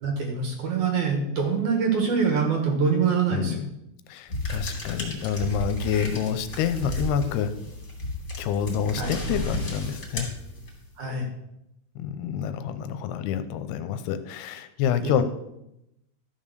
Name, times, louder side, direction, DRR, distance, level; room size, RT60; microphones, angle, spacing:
voice 1, 0.0-3.6 9.0-9.1 11.0-11.3 15.0-15.2, right 5 dB, 60° right, 3 dB, 2.4 m, -24 dB
voice 2, 3.3-3.7 4.1-7.5 8.4-10.3 12.0-15.2, left 8 dB, 85° left, 10 dB, 2.7 m, -27 dB
sound 1, 4.3-11.0, left 1 dB, 20° left, 2.6 m, -33 dB
13.0 x 5.6 x 6.7 m, 0.85 s
omnidirectional pair, 4.6 m